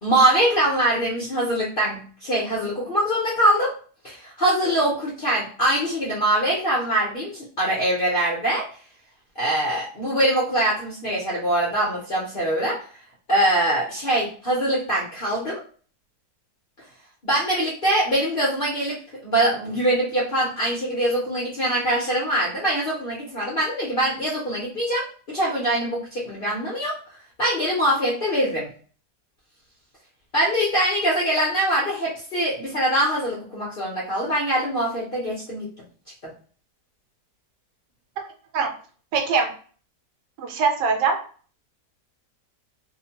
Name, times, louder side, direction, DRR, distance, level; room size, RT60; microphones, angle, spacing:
voice 1, 0.0-3.7 4.0-8.7 9.4-12.8 13.3-15.6 17.2-27.0 27.4-28.7 30.3-35.7 36.2-36.3, right 1 dB, 55° left, -5 dB, 0.6 m, -23 dB
voice 2, 39.1-39.5 40.4-41.2, right 5 dB, 90° right, 4 dB, 1.3 m, -22 dB
2.8 x 2.2 x 2.8 m, 0.42 s
omnidirectional pair, 1.8 m